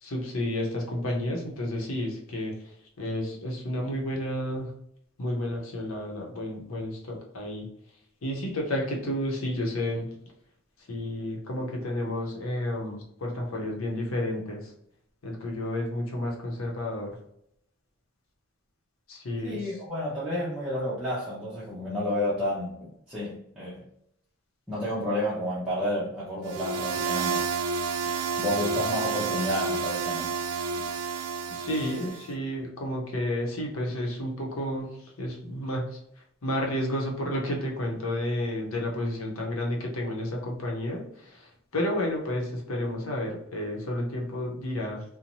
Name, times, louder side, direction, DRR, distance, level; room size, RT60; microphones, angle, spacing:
voice 1, 0.0-2.5 3.0-4.7 5.2-7.7 8.2-10.1 10.9-14.7 15.2-17.1 19.1-19.6 31.5-34.9 35.2-36.0 36.4-45.0, left 1 dB, 75° left, 0 dB, 0.8 m, -31 dB
voice 2, 19.4-22.8 23.1-23.8 24.7-27.4 28.4-30.3, left 1 dB, 5° right, -10 dB, 0.6 m, -30 dB
sound 1, 26.5-32.3, right 5 dB, 85° right, 0.3 m, -30 dB
2.7 x 2.1 x 2.9 m, 0.73 s
head